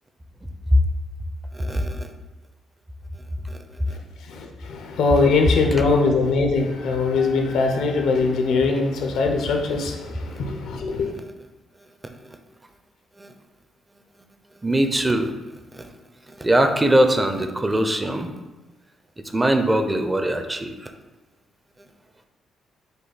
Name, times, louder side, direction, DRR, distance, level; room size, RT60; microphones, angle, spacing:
voice 1, 1.5-2.1 3.5-3.6 3.9-4.0 13.2-13.3 14.6-15.3 15.7-15.9 16.3-18.3 19.2-20.9, right 1 dB, 15° right, 6 dB, 0.4 m, -21 dB
voice 2, 4.2-11.2, left 4 dB, 80° left, 3 dB, 0.6 m, -21 dB
5.3 x 2.3 x 3.9 m, 1.1 s
cardioid pair, 90°, 0 cm